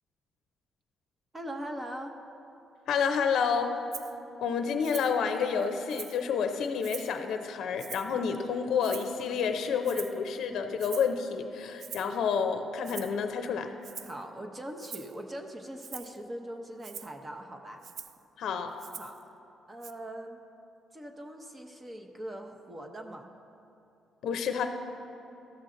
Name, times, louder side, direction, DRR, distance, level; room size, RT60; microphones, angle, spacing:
voice 1, 1.3-2.1 14.0-17.8 19.0-19.1 19.7-20.4 20.9-23.3, right 1 dB, 20° right, 4 dB, 0.8 m, -41 dB
voice 2, 2.9-3.7 4.4-13.7 18.4-18.7 24.2-24.7, left 6 dB, 75° left, 6 dB, 0.5 m, -29 dB
Rattle (instrument), 3.9-4.1 4.8-5.2 5.6-6.3 6.8-7.2 7.8-8.2 8.8-9.3 9.8-10.2 10.8-11.2 11.8-12.2 12.8-13.2 13.8-14.2 14.8-15.2 15.8-16.2 16.8-17.1 17.8-18.2 18.8-19.2 19.8-19.9, right 8 dB, 65° right, 0.3 m, -44 dB
13.5 x 6.4 x 3.8 m, 3.0 s
cardioid pair, 90°, 0 cm